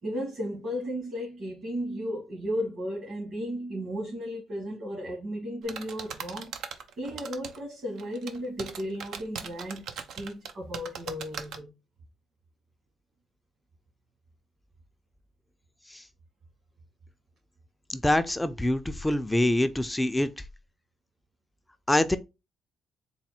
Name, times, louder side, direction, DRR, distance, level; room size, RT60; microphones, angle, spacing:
voice 1, 0.0-6.5 7.0-11.7, equal, 55° right, 1.8 m, -34 dB
sound 1, 5.7-7.6 8.0-11.6, right 7 dB, 75° right, 0.5 m, -39 dB
voice 2, 17.9-20.3 21.9-22.2, left 1 dB, 10° left, 0.4 m, -25 dB
4.1 x 2.1 x 4.3 m
cardioid pair, 90°, 0 cm